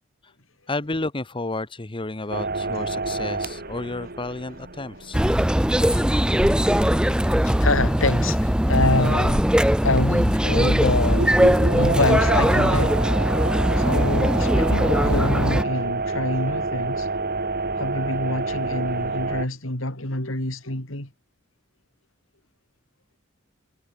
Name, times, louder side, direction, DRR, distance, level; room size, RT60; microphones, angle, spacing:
voice 1, 0.7-5.2, left 2 dB, 25° left, 1.2 m, -31 dB
sound 1, 2.3-8.3 8.6-8.7 10.2-10.5 11.0-19.5, right 3 dB, 50° right, 4.3 m, -28 dB
sound 2, 5.1-15.6, equal, 5° right, 0.8 m, -20 dB
voice 2, 5.7-6.1 6.4-13.1 13.7-17.1 17.8-21.1, left 2 dB, 90° left, 5.5 m, -27 dB
head